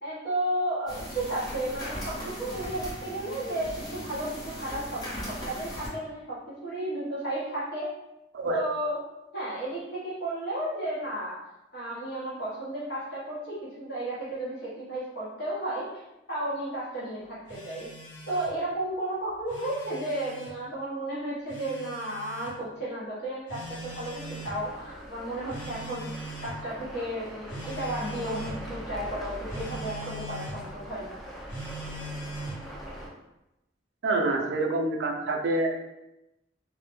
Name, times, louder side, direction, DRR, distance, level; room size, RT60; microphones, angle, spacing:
voice 1, 0.0-7.9 8.5-9.0 9.3-11.4 11.7-15.9 16.3-17.9 18.3-31.2, right 1 dB, 60° left, -8 dB, 0.8 m, -33 dB
sound 1, 0.9-5.9, equal, 20° left, 0.7 m, -38 dB
Telephone, 17.5-18.6 19.3-20.5 21.5-22.5 23.5-24.6 25.5-26.6 27.5-28.6 29.5-30.6 31.5-32.6, right 1 dB, 85° left, 1.0 m, -40 dB
sound 2, 23.6-33.1, equal, ahead, 0.3 m, -42 dB
voice 2, 34.0-35.8, right 2 dB, 70° right, 2 dB, 0.4 m, -27 dB
2.1 x 2.0 x 2.9 m, 0.92 s
head